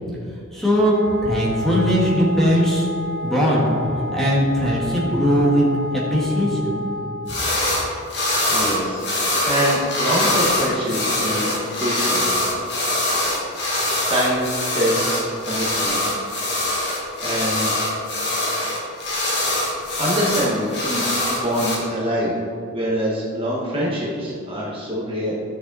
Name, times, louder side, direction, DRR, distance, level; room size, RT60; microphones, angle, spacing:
voice 1, 0.5-0.9 1.2-2.9 3.2-6.8, equal, ahead, -5 dB, 1.9 m, -19 dB
Wind instrument woodwind instrument, 0.8-7.5, equal, 70° right, 0.8 m, -31 dB
sound 1, 7.3-7.8 8.1-21.7, left 1 dB, 50° left, 2.1 m, -23 dB
voice 2, 7.8-8.2 8.5-12.4 13.6-14.5 14.7-16.1 16.6-16.8 17.2-17.8 20.0-22.4 22.7-25.3, equal, 25° right, -6 dB, 1.5 m, -25 dB
14.5 x 6.3 x 4.1 m, 2.5 s
head